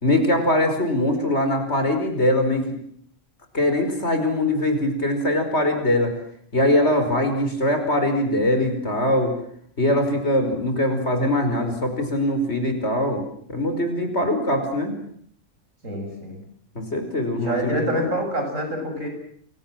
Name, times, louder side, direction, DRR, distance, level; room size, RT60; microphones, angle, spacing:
voice 1, 0.0-2.7 3.5-6.1 6.5-9.4 9.8-13.2 13.5-14.9 16.8-18.1, left 1 dB, 55° left, 6 dB, 5.4 m, -22 dB
voice 2, 15.8-16.4 17.4-19.1, equal, 75° right, 4 dB, 7.6 m, -26 dB
29.5 x 23.0 x 7.7 m, 0.65 s
omnidirectional pair, 1.3 m